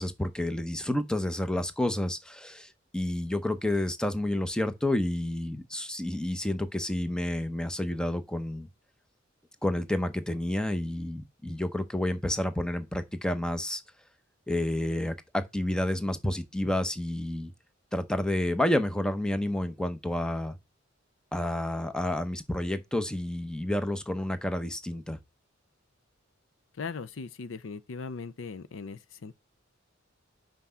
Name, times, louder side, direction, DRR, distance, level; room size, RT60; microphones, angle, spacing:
voice 1, 0.0-8.7 9.6-13.8 14.5-17.5 17.9-20.6 21.3-25.2, left 1 dB, 5° left, 0.7 m, -30 dB
voice 2, 26.7-29.4, left 4 dB, 70° left, 0.5 m, -39 dB
5.9 x 5.2 x 5.6 m
head